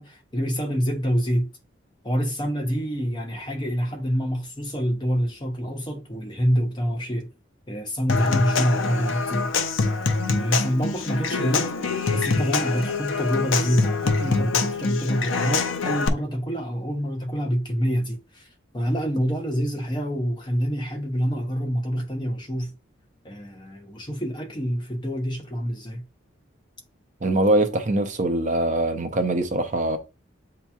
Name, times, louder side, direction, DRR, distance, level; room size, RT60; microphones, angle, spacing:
voice 1, 0.0-1.5 2.0-7.3 7.7-9.5 10.3-11.7 12.1-18.5 18.7-22.7 23.2-26.0, equal, 20° left, 0.8 m, -26 dB
Human voice / Acoustic guitar / Percussion, 8.1-16.1, left 4 dB, 75° left, 0.6 m, -25 dB
voice 2, 27.2-30.0, right 1 dB, 40° right, 0.5 m, -22 dB
7.9 x 2.9 x 2.3 m
head